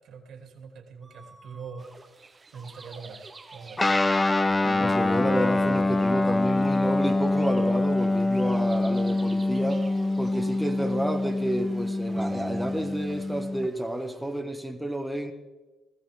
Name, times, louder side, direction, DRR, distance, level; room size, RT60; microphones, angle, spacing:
voice 1, 0.0-1.9 2.5-4.0, right 5 dB, 75° right, 3 dB, 2.6 m, -43 dB
sound 1, 1.0-2.1 2.5-14.4, right 2 dB, 15° right, 1.7 m, -49 dB
sound 2, 1.8-13.4, right 3 dB, 30° right, 1.1 m, -45 dB
Guitar, 3.8-13.7, left 2 dB, 20° left, 0.6 m, -25 dB
voice 2, 4.8-9.8 10.2-15.3, right 1 dB, ahead, 3 dB, 1.3 m, -30 dB
19.5 x 13.5 x 3.5 m, 1.2 s
cardioid pair, 90°, 0 cm